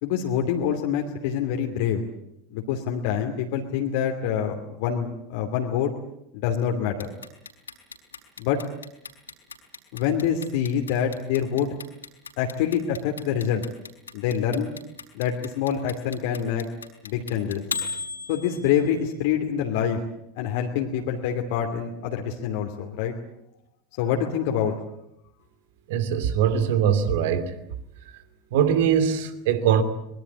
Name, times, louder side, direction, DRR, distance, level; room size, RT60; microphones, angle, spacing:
voice 1, 0.0-2.0 2.5-5.9 6.3-7.1 8.4-8.6 9.9-11.7 12.4-13.6 14.1-14.7 15.1-16.6 17.0-17.6 18.3-20.0 20.4-23.1 24.0-24.8, left 8 dB, 55° left, 2.7 m, -26 dB
Clock, 7.0-19.0, left 5 dB, 80° left, 4.7 m, -36 dB
voice 2, 25.9-27.5 28.5-29.8, right 8 dB, 60° right, 2.7 m, -22 dB
24.5 x 22.0 x 8.4 m
figure-of-eight pair, 80°, 0 cm